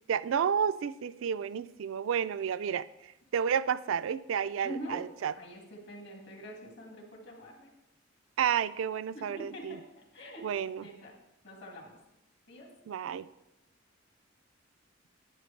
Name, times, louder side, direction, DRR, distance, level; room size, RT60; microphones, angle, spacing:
voice 1, 0.1-2.9 3.3-5.3 8.4-9.8 10.4-10.9 12.9-13.3, right 8 dB, 80° right, 14 dB, 0.3 m, -31 dB
voice 2, 4.6-5.0 5.4-7.7 9.1-10.5 10.8-11.1 11.4-12.0 12.5-12.7, equal, 60° left, 1 dB, 2.0 m, -45 dB
9.9 x 8.3 x 3.2 m, 0.89 s
head